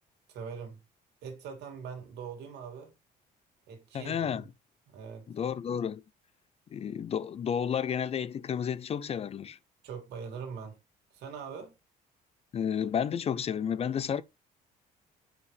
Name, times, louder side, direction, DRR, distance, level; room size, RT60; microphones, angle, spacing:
voice 1, 0.3-0.8 1.2-3.0 3.7-4.4 4.9-5.3 9.8-10.8 11.1-11.7, right 6 dB, 80° right, 2.5 m, -42 dB
voice 2, 3.9-4.4 5.3-6.0 6.7-9.6 12.5-14.2, left 8 dB, 35° left, 0.4 m, -31 dB
7.0 x 5.2 x 3.2 m
cardioid pair, 110°, 17 cm